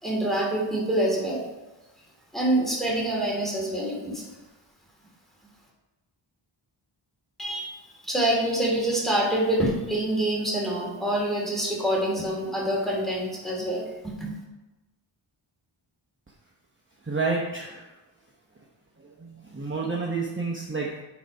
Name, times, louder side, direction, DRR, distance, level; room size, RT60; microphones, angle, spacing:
voice 1, 0.0-1.4 2.3-4.3 7.4-7.7 8.0-13.8 14.2-14.3, right 1 dB, ahead, -4 dB, 2.9 m, -26 dB
voice 2, 17.0-17.9 19.0-21.0, right 4 dB, 25° right, -2 dB, 1.0 m, -30 dB
8.3 x 4.1 x 5.3 m, 1.0 s
wide cardioid pair, 50°, 49 cm